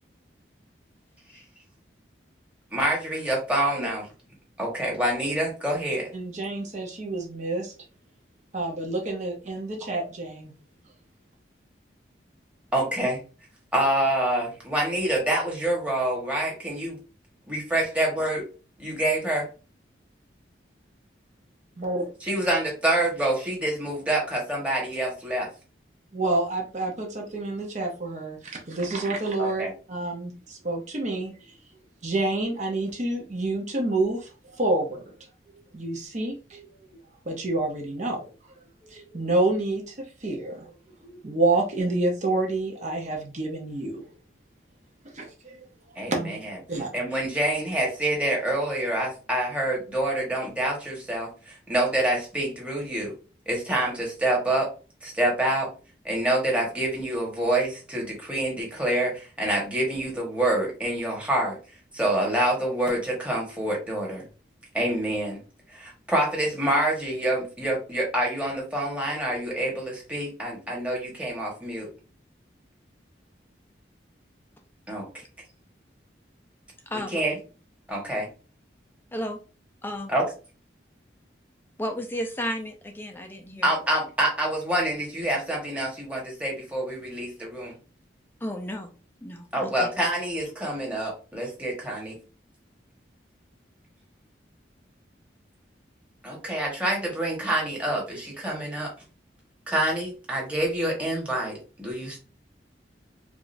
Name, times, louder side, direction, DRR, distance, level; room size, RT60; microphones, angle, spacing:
voice 1, 2.7-4.0 4.6-6.1 12.7-13.2 13.7-17.0 17.5-18.4 18.8-19.5 22.2-25.5 29.4-29.7 46.0-46.6 46.9-53.1 53.5-54.7 55.0-55.7 56.0-61.6 61.9-64.2 64.7-65.4 65.7-71.9 74.9-75.2 76.9-77.4 77.9-78.3 80.1-80.2 83.6-87.7 89.5-92.2 96.2-98.9 99.7-102.2, right 1 dB, 5° right, 1.3 m, -27 dB
voice 2, 6.1-7.7 8.5-10.5 21.8-22.1 26.1-31.3 32.0-34.3 34.6-35.0 35.7-36.6 37.3-38.3 38.8-39.9 40.2-40.7 41.0-44.1 45.1-45.6 46.1-46.4 46.7-46.9, right 2 dB, 40° right, 0.7 m, -28 dB
voice 3, 76.9-77.2 79.1-79.4 79.8-80.1 81.8-83.7 88.4-88.9 89.2-89.9, equal, 10° left, 0.5 m, -33 dB
4.8 x 2.4 x 2.6 m
head